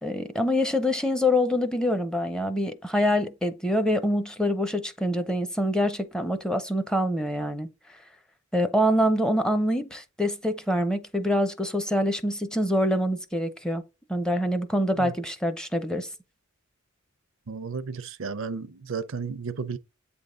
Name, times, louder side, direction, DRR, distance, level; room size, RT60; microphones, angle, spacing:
voice 1, 0.0-7.7 8.5-13.8 14.1-16.1, equal, 5° left, 0.7 m, -25 dB
voice 2, 17.5-19.8, right 5 dB, 70° right, 0.6 m, -33 dB
8.3 x 3.5 x 3.8 m
head